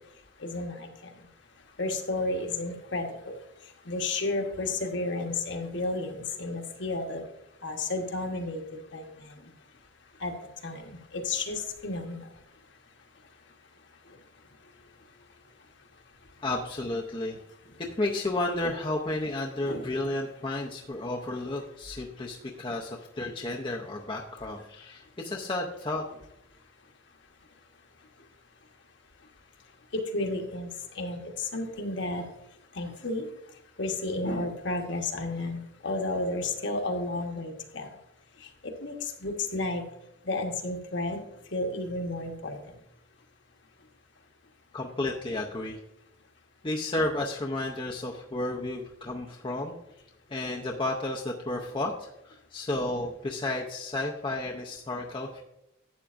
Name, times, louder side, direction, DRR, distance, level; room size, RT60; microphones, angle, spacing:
voice 1, 0.4-0.9 1.8-3.3 3.9-7.2 7.6-8.6 8.9-9.1 10.2-10.3 10.6-10.9 11.2-12.2 19.7-19.9 30.1-30.7 31.0-32.2 32.8-33.2 33.8-37.9 38.8-38.9 39.2-39.8 40.3-41.2 41.5-42.5, left 2 dB, 55° left, 3 dB, 1.2 m, -32 dB
voice 2, 16.4-17.4 17.8-26.1 44.7-45.8 46.6-49.7 50.3-55.4, left 2 dB, 25° left, -1 dB, 0.6 m, -32 dB
11.5 x 8.2 x 2.5 m, 0.83 s
head